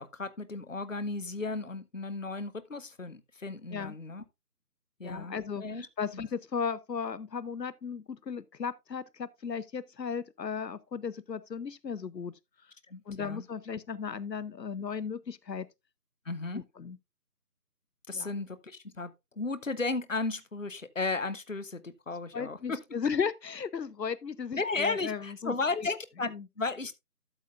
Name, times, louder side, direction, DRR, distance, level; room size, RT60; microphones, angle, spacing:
voice 1, 0.0-4.2 5.0-5.9 6.1-6.2 12.9-13.4 16.3-16.6 18.1-22.8 24.5-26.3 26.6-26.9, left 3 dB, 50° left, 0.8 m, -35 dB
voice 2, 5.0-12.3 13.1-15.7 16.5-17.0 18.1-18.3 22.3-25.9 26.3-26.4, left 6 dB, 90° left, 0.7 m, -35 dB
13.0 x 7.1 x 2.4 m
figure-of-eight pair, 170°, 48 cm